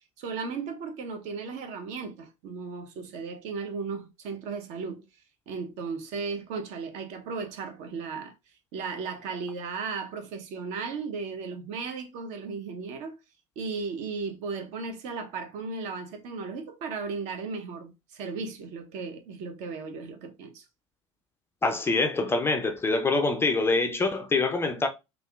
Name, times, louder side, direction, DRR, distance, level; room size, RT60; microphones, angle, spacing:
voice 1, 0.2-5.0 5.5-8.3 8.7-13.1 13.6-20.6, right 4 dB, 50° right, 0.7 m, -35 dB
voice 2, 21.6-24.9, left 3 dB, 15° left, 0.4 m, -25 dB
3.4 x 2.4 x 2.3 m
figure-of-eight pair, 70°, 16 cm